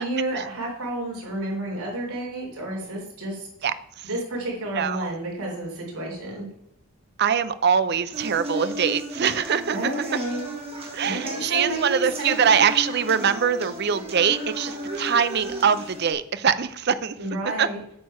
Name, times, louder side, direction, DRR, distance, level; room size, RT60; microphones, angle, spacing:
voice 1, 0.0-3.5 4.0-6.5 9.7-10.5 11.0-12.4 17.2-17.8, right 1 dB, 85° right, -1 dB, 3.7 m, -30 dB
voice 2, 4.8-5.2 7.2-9.9 10.9-17.2 17.6-17.7, right 7 dB, 50° right, 13 dB, 0.5 m, -23 dB
sound 1, 8.1-16.1, right 1 dB, 25° right, 1.5 m, -34 dB
8.6 x 6.6 x 5.7 m, 0.76 s
head